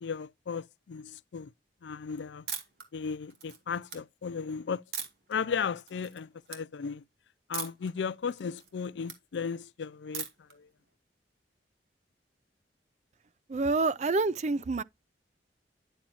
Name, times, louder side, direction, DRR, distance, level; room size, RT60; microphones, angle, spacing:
voice 1, 0.0-1.5 1.8-2.5 2.9-4.8 5.3-7.0 7.5-10.3 10.6-10.7, left 6 dB, 75° left, 0.4 m, -35 dB
sound 1, 2.5-2.8 3.3-4.0 4.9-5.3 5.8-6.2 6.5-6.6 7.5-7.9 8.3-9.2 10.1-10.5, right 7 dB, 65° right, 2.6 m, -39 dB
voice 2, 13.5-14.8, right 3 dB, 40° right, 0.4 m, -27 dB
10.0 x 7.1 x 2.9 m
head